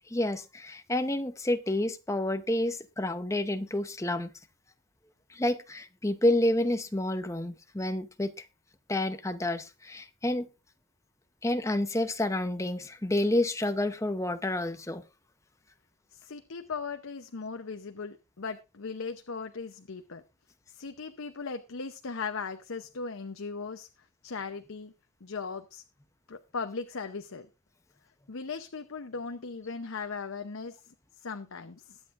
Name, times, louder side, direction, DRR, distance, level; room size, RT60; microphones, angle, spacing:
voice 1, 0.1-4.3 5.3-8.4 8.9-10.5 11.4-15.0, left 1 dB, 15° left, 9 dB, 0.7 m, -29 dB
voice 2, 16.1-20.2 20.7-23.9 24.2-24.9 25.2-25.8 26.3-27.5 28.3-30.9 31.2-32.0, left 4 dB, 80° left, 7 dB, 0.8 m, -38 dB
21.5 x 8.1 x 2.5 m, 0.27 s
head